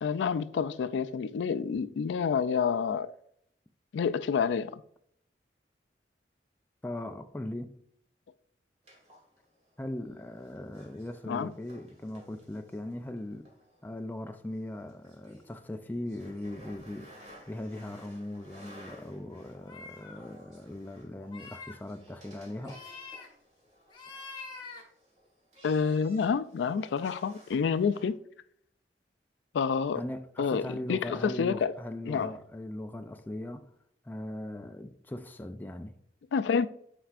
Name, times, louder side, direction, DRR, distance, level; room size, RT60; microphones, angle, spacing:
voice 1, 0.0-3.1 3.9-4.8 11.2-11.5 25.6-28.1 29.5-30.0 30.4-30.6 30.9-31.7 32.1-32.3 36.3-36.7, left 6 dB, 85° left, 0.3 m, -28 dB
voice 2, 6.8-7.8 9.8-13.5 13.8-22.8 29.9-33.7 34.0-36.0, left 1 dB, 10° left, 0.3 m, -39 dB
sound 1, 8.8-28.1, equal, 40° right, 1.9 m, -56 dB
sound 2, 19.5-20.2 21.2-21.8 22.6-23.3 23.9-24.8, left 4 dB, 25° left, 1.0 m, -45 dB
9.0 x 4.4 x 2.5 m
head